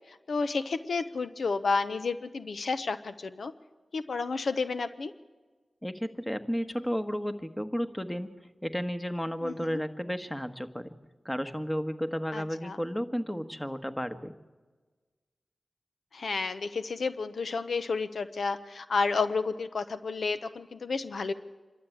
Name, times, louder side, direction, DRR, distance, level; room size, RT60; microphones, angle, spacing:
voice 1, 0.1-3.5 3.9-5.1 9.4-9.8 12.3-12.8 16.1-21.3, left 4 dB, 80° left, 11 dB, 0.7 m, -31 dB
voice 2, 5.8-8.3 8.6-10.9 11.2-14.3, equal, 10° left, 8 dB, 1.4 m, -33 dB
26.0 x 12.5 x 8.6 m, 1.3 s
cardioid pair, 45°, 0 cm